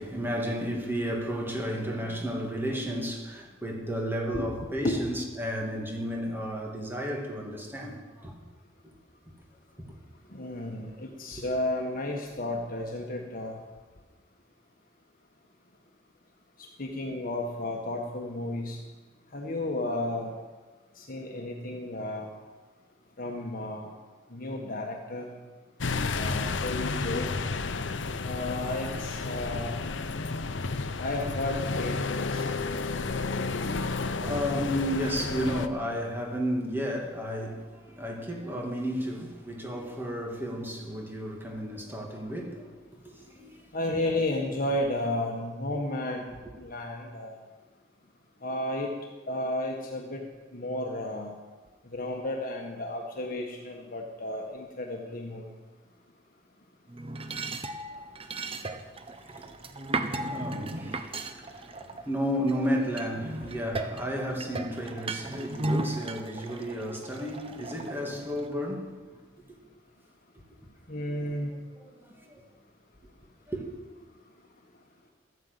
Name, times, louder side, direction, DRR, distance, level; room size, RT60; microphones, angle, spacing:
voice 1, 0.0-8.4 33.3-44.2 57.9-59.8 60.2-69.2 70.6-70.7 71.8-72.4 73.5-73.6, equal, 10° right, 2.4 m, -33 dB
voice 2, 10.3-13.6 16.8-18.8 19.3-20.3 21.0-22.3 23.2-23.9 24.3-25.3 26.1-27.4 28.2-29.7 31.0-32.5 43.7-46.2 46.6-47.4 48.4-48.9 49.3-50.2 50.5-51.3 51.9-55.5 70.9-71.6, left 1 dB, 50° left, 1.5 m, -32 dB
sound 1, 25.8-35.7, left 3 dB, 70° left, 0.8 m, -31 dB
sound 2, 56.9-62.5 63.0-68.5, right 2 dB, 30° right, 0.9 m, -36 dB
13.0 x 9.5 x 8.2 m
head